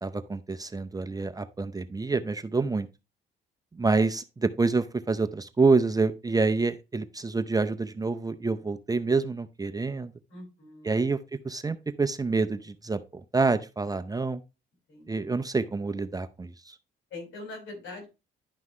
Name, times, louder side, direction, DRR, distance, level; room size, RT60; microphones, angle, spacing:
voice 1, 0.0-2.9 3.7-10.1 10.8-11.2 11.4-13.0 13.3-14.4 15.1-16.7, right 3 dB, 20° right, 0.6 m, -27 dB
voice 2, 10.3-11.0 14.9-15.1 17.1-18.1, left 2 dB, 80° left, 5.7 m, -42 dB
10.5 x 5.6 x 3.1 m
cardioid pair, 90°, 20 cm